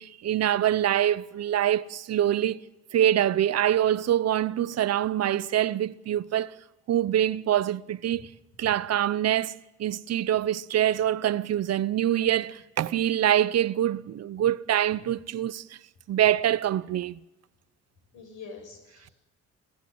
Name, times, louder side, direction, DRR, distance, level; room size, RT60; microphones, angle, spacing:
voice 1, 0.0-2.7 2.9-6.5 6.9-8.3 8.6-15.6 16.1-17.2, right 11 dB, 55° right, 0.7 m, -25 dB
voice 2, 18.1-19.1, left 4 dB, 90° left, 7.1 m, -45 dB
28.0 x 14.0 x 7.8 m
cardioid pair, 90°, 30 cm